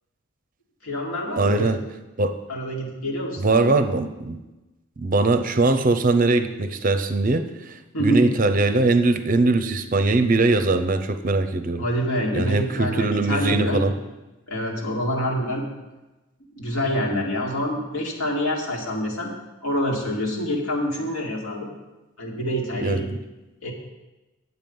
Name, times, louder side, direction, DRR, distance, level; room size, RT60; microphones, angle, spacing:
voice 1, 0.8-1.7 2.5-3.8 7.9-8.3 11.8-13.8 14.5-15.6 16.6-19.3 19.6-21.7 22.2-23.0 23.6-23.7, equal, 75° left, -2 dB, 2.1 m, -26 dB
voice 2, 1.4-1.8 2.2-2.4 3.4-4.4 5.0-11.8 12.3-13.9 22.8-23.2, right 3 dB, 40° right, 10 dB, 0.5 m, -21 dB
9.4 x 8.0 x 5.3 m, 1.1 s
head